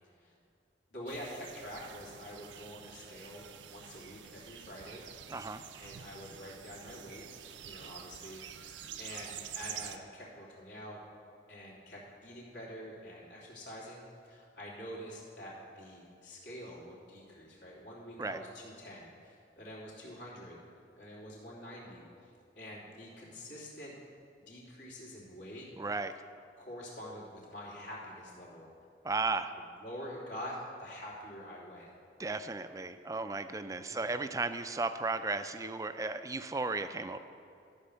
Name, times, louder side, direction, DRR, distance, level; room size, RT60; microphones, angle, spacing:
voice 1, 0.9-5.0 5.8-7.2 7.6-11.0 11.5-20.6 21.0-22.0 22.6-23.9 24.5-25.7 26.6-28.7 29.8-31.9 33.7-34.2, equal, 75° left, -6 dB, 3.2 m, -46 dB
sound 1, 1.1-10.0, right 9 dB, 85° right, 0.6 m, -47 dB
voice 2, 5.3-5.6 18.2-18.4 25.8-26.1 29.0-29.5 32.2-37.2, right 3 dB, 20° right, 10 dB, 0.4 m, -35 dB
13.5 x 5.3 x 6.9 m, 2.5 s
head